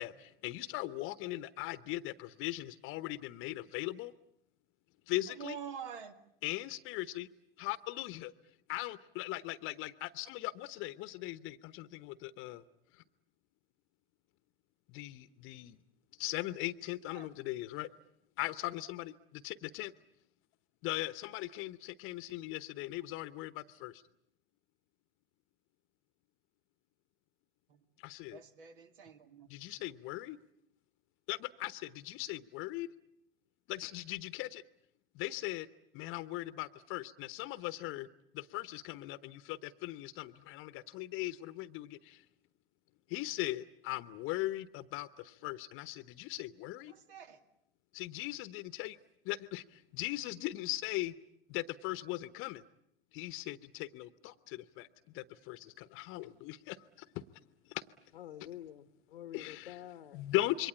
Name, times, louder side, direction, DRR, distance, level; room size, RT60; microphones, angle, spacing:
voice 1, 0.0-4.1 5.1-5.6 6.4-7.3 7.6-8.3 8.7-12.6 12.9-13.0 14.9-15.8 16.2-17.9 18.4-19.9 20.8-24.0 28.0-28.4 29.5-30.4 31.3-32.9 33.7-34.6 35.1-35.7 35.9-38.1 38.3-42.2 43.1-46.9 47.9-49.0 49.2-51.1 51.5-52.6 53.1-54.9 55.1-57.9 59.3-59.7 60.1-60.7, left 17 dB, 45° left, 1.0 m, -39 dB
voice 2, 5.3-6.1 17.1-17.3 27.7-27.8 28.3-29.5 46.9-47.4, right 7 dB, 65° right, 2.3 m, -46 dB
voice 3, 58.1-60.2, left 11 dB, 75° left, 1.1 m, -48 dB
27.5 x 23.0 x 8.7 m
figure-of-eight pair, 85°, 29 cm